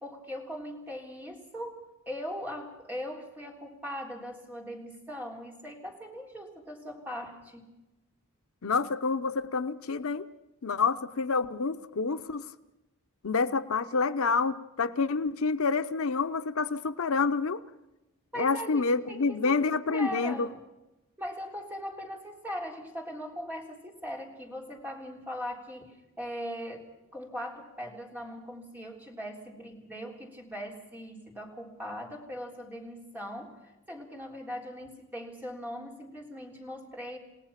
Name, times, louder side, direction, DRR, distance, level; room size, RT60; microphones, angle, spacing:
voice 1, 0.0-7.6 18.3-19.6 19.9-20.6 21.2-37.2, equal, 10° right, 0 dB, 3.7 m, -40 dB
voice 2, 8.6-10.3 10.6-12.5 13.2-17.6 18.4-20.5, left 4 dB, 75° left, 11 dB, 0.7 m, -28 dB
29.5 x 17.5 x 5.8 m, 0.97 s
head